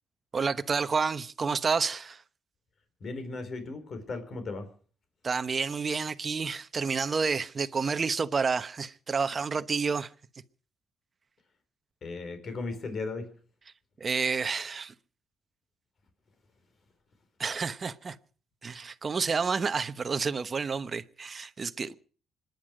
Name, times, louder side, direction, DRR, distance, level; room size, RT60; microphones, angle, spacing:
voice 1, 0.3-2.2 5.2-10.1 14.0-14.9 17.4-18.2 18.6-21.9, right 5 dB, 35° right, 1.0 m, -29 dB
voice 2, 3.0-4.7 12.0-13.3, left 3 dB, 50° left, 4.5 m, -36 dB
26.0 x 10.5 x 5.1 m
cardioid pair, 90°, 0 cm